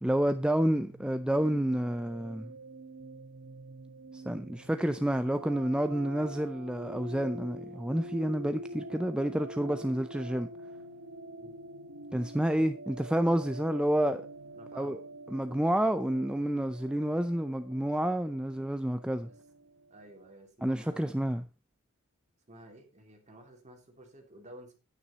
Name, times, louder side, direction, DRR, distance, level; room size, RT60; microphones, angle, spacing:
voice 1, 0.0-2.5 4.1-10.5 12.1-14.2 14.8-15.0 15.3-19.3 20.6-21.4, right 1 dB, 5° right, 0.4 m, -29 dB
sound 1, 0.8-20.3, right 1 dB, 60° right, 1.8 m, -46 dB
voice 2, 14.6-15.0 19.2-19.3 19.9-21.4 22.5-24.7, right 1 dB, 35° right, 2.9 m, -52 dB
9.6 x 9.1 x 4.1 m
head